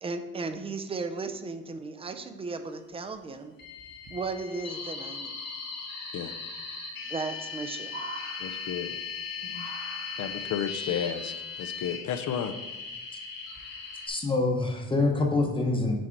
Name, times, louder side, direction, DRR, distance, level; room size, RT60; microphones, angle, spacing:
voice 1, 0.0-3.5 4.1-5.4 7.1-8.0, right 4 dB, 20° right, 8 dB, 0.3 m, -35 dB
sound 1, 2.5-2.6 2.9-3.2 3.6-4.2 5.7-5.8 6.0-6.1 6.7-6.8 7.0-9.2 9.5-10.6 11.5-12.2 12.9-13.0 13.5-13.9 14.3-14.5, right 3 dB, 35° right, 0.9 m, -45 dB
sound 2, 3.6-14.1, left 5 dB, 85° left, 1.5 m, -38 dB
voice 2, 8.4-9.0 9.4-9.7 10.2-12.6, left 9 dB, 60° left, 9 dB, 0.5 m, -33 dB
voice 3, 14.1-15.9, left 2 dB, 15° left, 1 dB, 0.8 m, -25 dB
6.2 x 4.2 x 4.5 m, 1.1 s
cardioid pair, 165°, 33 cm